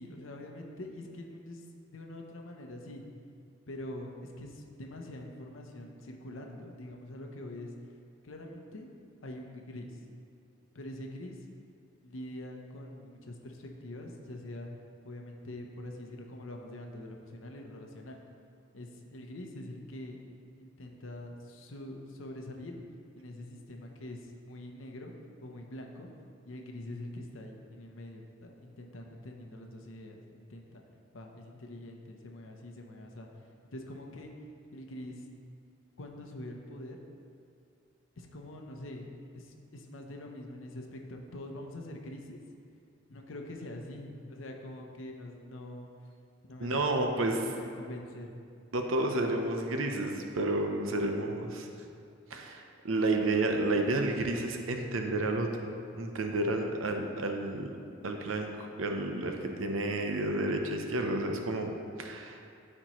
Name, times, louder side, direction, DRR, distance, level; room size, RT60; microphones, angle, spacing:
voice 1, 0.0-3.0 3.7-7.7 8.2-8.9 9.2-10.0 10.7-11.4 12.0-14.7 15.0-18.2 18.7-20.2 20.6-22.8 23.2-25.1 25.4-26.1 26.4-30.8 31.1-33.3 33.7-34.3 34.7-35.3 36.0-37.0 38.2-42.4 43.1-45.9 46.5-47.0 47.3-48.3 48.9-49.2, left 1 dB, 75° left, 2 dB, 0.7 m, -44 dB
voice 2, 46.6-47.4 48.7-51.7 52.3-55.5 55.9-57.7 58.0-61.7 62.0-62.4, right 2 dB, 85° right, 4 dB, 0.7 m, -31 dB
13.0 x 4.4 x 3.0 m, 2.4 s
head